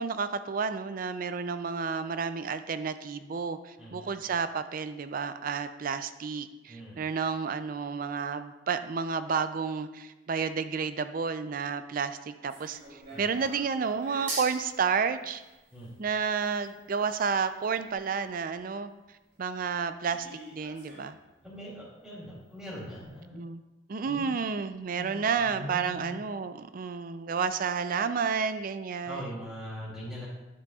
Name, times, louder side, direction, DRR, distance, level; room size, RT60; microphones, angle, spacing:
voice 1, 0.0-15.4 16.0-18.9 19.4-20.3 20.5-21.2 23.3-23.6 23.9-29.3, right 5 dB, 50° right, 11 dB, 0.4 m, -31 dB
voice 2, 3.8-4.1 6.7-7.0 13.1-13.4 15.7-15.9 21.4-23.4 24.0-24.4 24.9-26.1 29.0-30.3, equal, 5° right, -12 dB, 2.5 m, -41 dB
sound 1, 12.5-18.4 18.8-18.9 19.4-19.5 20.1-21.3 21.5-21.6 21.9-22.0 22.6-22.7 22.9-23.1, right 2 dB, 85° right, 2.6 m, -44 dB
10.5 x 6.9 x 2.4 m, 1.0 s
head